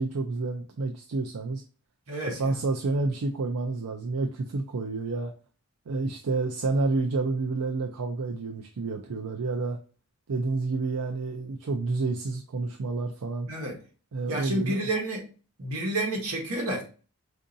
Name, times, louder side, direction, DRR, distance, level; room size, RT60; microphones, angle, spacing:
voice 1, 0.0-1.6 2.3-5.3 5.9-9.8 10.3-13.5 14.1-14.8, right 3 dB, 90° right, 0.5 m, -29 dB
voice 2, 2.1-2.6 13.5-13.8 14.3-15.3 15.6-16.8, right 1 dB, 75° right, 1.3 m, -30 dB
4.6 x 2.6 x 2.6 m
head